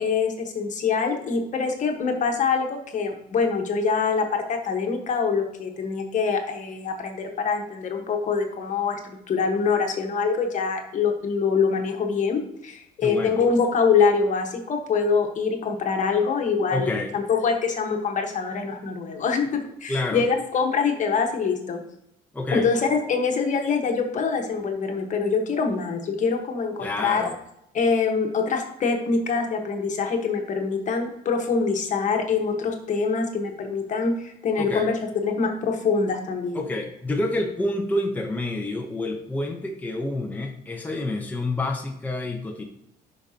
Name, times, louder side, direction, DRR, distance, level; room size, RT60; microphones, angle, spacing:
voice 1, 0.0-21.8 22.5-27.2 27.7-36.6, left 5 dB, 45° left, 4 dB, 1.4 m, -24 dB
voice 2, 13.0-13.4 16.7-17.1 19.9-20.2 22.3-22.7 26.8-27.4 34.6-34.9 36.5-42.6, left 2 dB, 10° left, 1 dB, 0.9 m, -28 dB
11.0 x 5.2 x 2.9 m, 0.80 s
cardioid pair, 110°, 17 cm